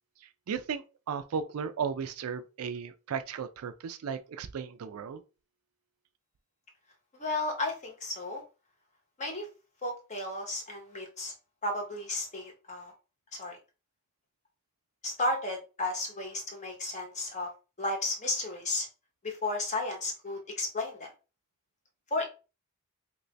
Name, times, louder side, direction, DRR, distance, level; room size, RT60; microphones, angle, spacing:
voice 1, 0.5-5.2, right 6 dB, 75° right, 0.4 m, -35 dB
voice 2, 7.1-8.4 9.2-9.5 9.8-11.3 11.6-12.9 13.3-13.6 15.0-17.5 17.8-18.9 19.2-21.1 22.1-22.3, left 2 dB, 35° left, 1.0 m, -33 dB
2.9 x 2.6 x 3.2 m
head